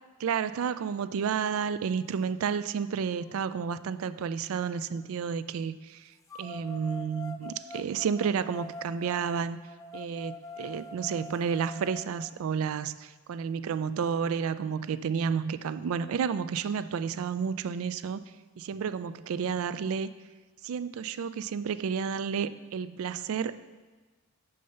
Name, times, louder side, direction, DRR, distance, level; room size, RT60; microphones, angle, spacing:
voice 1, 0.2-6.1 6.4-9.6 9.9-18.2 18.6-20.1 20.6-23.5, right 6 dB, 75° right, 14 dB, 0.3 m, -31 dB
sound 1, 3.1-5.0 6.3-12.3, left 2 dB, 15° left, 0.4 m, -45 dB
6.6 x 5.6 x 5.5 m, 1.3 s
head